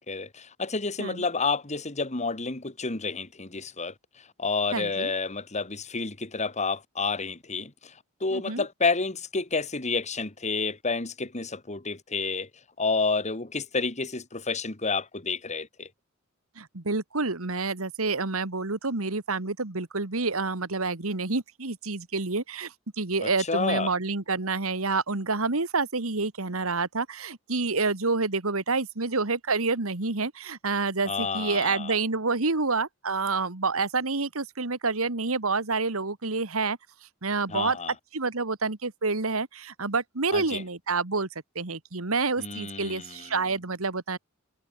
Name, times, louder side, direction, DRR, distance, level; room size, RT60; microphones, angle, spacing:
voice 1, 0.0-12.5 12.8-15.9 23.2-23.9 31.1-31.9 37.5-37.9 40.3-40.6 42.4-43.3, left 4 dB, 35° left, 2.2 m, -30 dB
voice 2, 4.7-5.1 8.3-8.7 16.6-36.8 37.2-37.8 38.1-41.3 41.6-44.2, right 3 dB, 80° right, 1.9 m, -28 dB
head